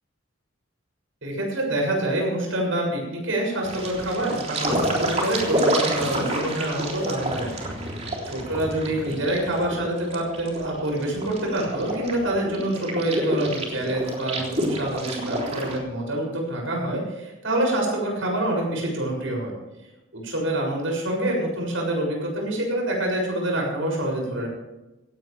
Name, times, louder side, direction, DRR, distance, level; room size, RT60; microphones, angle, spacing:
voice 1, 1.2-7.7 8.2-19.5 20.1-24.5, right 1 dB, 80° right, -1 dB, 7.2 m, -26 dB
sound 1, 3.6-15.8, right 1 dB, 35° right, 3.6 m, -29 dB
17.5 x 17.0 x 3.5 m, 1.0 s
head